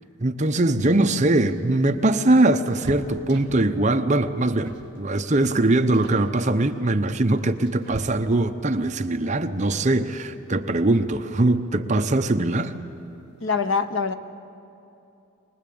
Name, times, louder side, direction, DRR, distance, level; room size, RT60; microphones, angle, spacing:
voice 1, 0.2-12.7, right 2 dB, 35° right, 7 dB, 0.8 m, -21 dB
sound 1, 1.1-3.8 4.6-5.0 5.3-5.5 5.9-6.3 7.1-8.6 10.4-10.5 10.8-10.9 12.1-12.5 12.9-13.0 13.3-13.5, right 1 dB, 55° right, 1.8 m, -41 dB
voice 2, 13.4-14.1, left 5 dB, 60° left, 9 dB, 1.0 m, -24 dB
24.5 x 19.5 x 8.7 m, 2.8 s
head